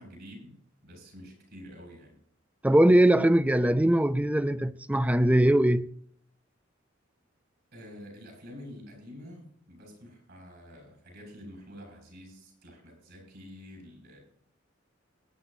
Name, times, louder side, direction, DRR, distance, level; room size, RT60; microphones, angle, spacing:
voice 1, 0.0-2.2 7.7-14.2, equal, 60° right, 6.8 m, -48 dB
voice 2, 2.6-5.9, right 1 dB, 5° right, 0.5 m, -21 dB
23.0 x 10.0 x 2.7 m
head